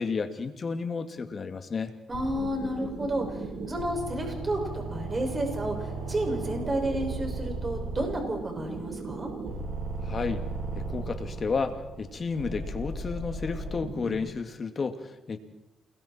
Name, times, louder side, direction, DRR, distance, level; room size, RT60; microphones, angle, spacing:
voice 1, 0.0-1.9 10.0-10.4 10.7-15.4, left 4 dB, 40° left, 6 dB, 2.4 m, -32 dB
voice 2, 2.1-3.4 3.7-9.3, right 1 dB, 25° right, 2 dB, 6.3 m, -31 dB
sound 1, 2.1-14.3, right 3 dB, 60° right, 7.2 m, -36 dB
29.0 x 21.5 x 4.5 m, 0.97 s
cardioid pair, 90°, 0 cm